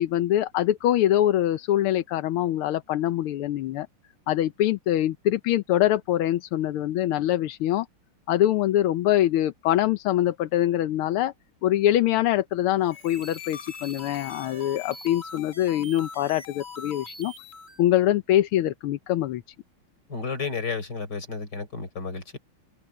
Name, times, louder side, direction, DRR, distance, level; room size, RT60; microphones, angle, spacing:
voice 1, 0.0-3.9 4.3-7.9 8.3-11.3 11.6-17.3 17.8-19.4, left 13 dB, 85° left, 1.7 m, -24 dB
sound 1, 12.8-17.8, left 4 dB, 30° left, 3.8 m, -42 dB
voice 2, 20.1-22.4, left 4 dB, 50° left, 5.1 m, -32 dB
omnidirectional pair, 2.3 m